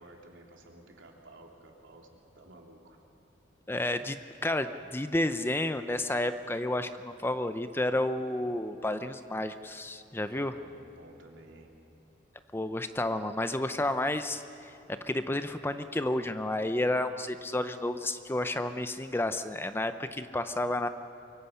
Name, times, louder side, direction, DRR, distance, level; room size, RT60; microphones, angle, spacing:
voice 1, 0.0-3.0 10.3-11.7, right 2 dB, 90° right, 0 dB, 2.9 m, -53 dB
voice 2, 3.7-10.5 12.5-14.7 15.0-20.9, left 1 dB, 10° left, 10 dB, 0.6 m, -31 dB
24.0 x 23.5 x 5.7 m, 2.7 s
head